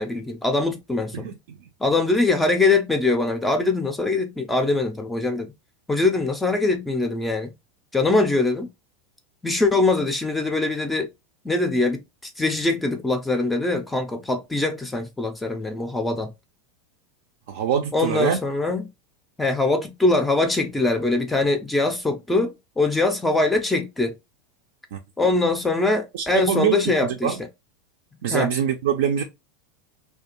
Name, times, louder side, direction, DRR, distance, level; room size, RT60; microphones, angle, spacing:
voice 1, 0.0-1.3 1.8-5.5 5.9-7.5 7.9-8.7 9.4-11.1 11.4-12.0 12.4-16.3 17.9-18.9 19.4-24.1 25.2-27.3 28.3-28.5, left 2 dB, 10° left, 0.4 m, -22 dB
voice 2, 1.1-1.6 17.5-18.4 24.9-25.0 26.1-26.8 27.2-27.4 28.2-29.2, right 8 dB, 75° right, 0.4 m, -24 dB
2.5 x 2.3 x 2.8 m
supercardioid pair, 135°, 0 cm